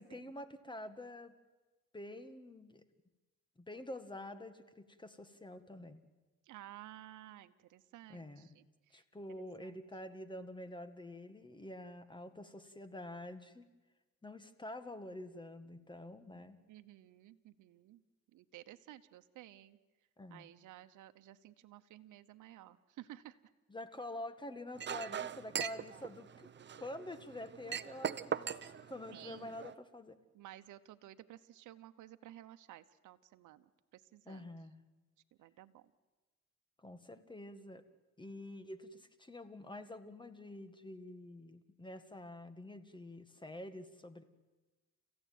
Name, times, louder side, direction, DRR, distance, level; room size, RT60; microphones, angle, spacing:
voice 1, 0.0-1.3 1.9-2.8 3.6-6.0 8.1-8.6 8.9-13.7 14.2-16.6 20.2-20.5 23.7-30.2 34.3-34.8 36.8-37.8 38.2-44.2, left 1 dB, 15° left, 10 dB, 1.8 m, -48 dB
voice 2, 6.4-9.0 9.3-9.8 16.7-18.0 18.3-19.8 20.3-23.4 29.1-29.5 30.3-33.6 33.9-34.5 35.4-35.8, right 14 dB, 80° right, 9 dB, 1.0 m, -54 dB
Chink clink, 24.8-29.7, right 8 dB, 35° right, 0.8 m, -41 dB
30.0 x 15.5 x 9.4 m, 1.2 s
cardioid pair, 90°, 30 cm